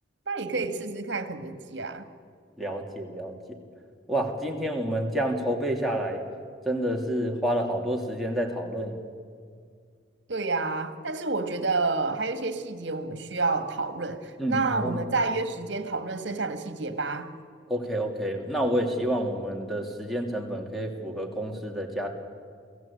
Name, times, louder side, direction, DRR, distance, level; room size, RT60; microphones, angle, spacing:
voice 1, 0.3-2.1 10.3-17.3, right 3 dB, 60° right, 9 dB, 1.8 m, -29 dB
voice 2, 2.6-3.4 4.1-6.2 6.6-9.0 14.4-15.0 17.7-22.1, equal, ahead, -1 dB, 2.8 m, -29 dB
28.5 x 17.5 x 8.6 m, 2.1 s
head